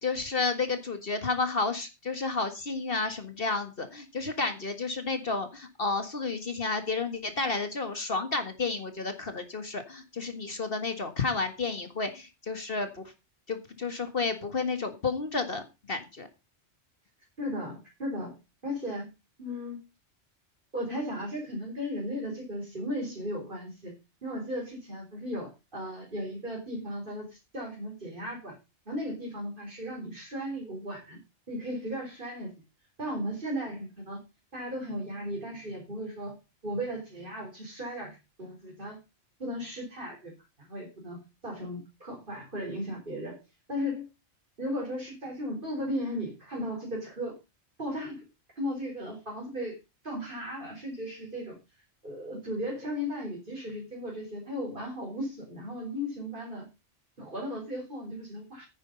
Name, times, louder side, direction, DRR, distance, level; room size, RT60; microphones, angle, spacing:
voice 1, 0.0-12.9 13.5-15.6 15.9-16.3, left 4 dB, 55° left, 8 dB, 1.9 m, -31 dB
voice 2, 17.4-18.4 18.6-19.1 19.4-19.8 20.7-23.9 24.2-28.6 28.9-31.2 31.5-32.5 33.0-34.2 34.5-39.0 39.4-40.3 40.6-43.4 43.7-44.1 44.6-47.3 47.8-48.2 48.6-49.8 50.0-51.6 52.0-56.6 57.2-58.6, equal, 45° right, 0 dB, 4.4 m, -36 dB
10.0 x 9.7 x 5.3 m, 0.27 s
omnidirectional pair, 1.2 m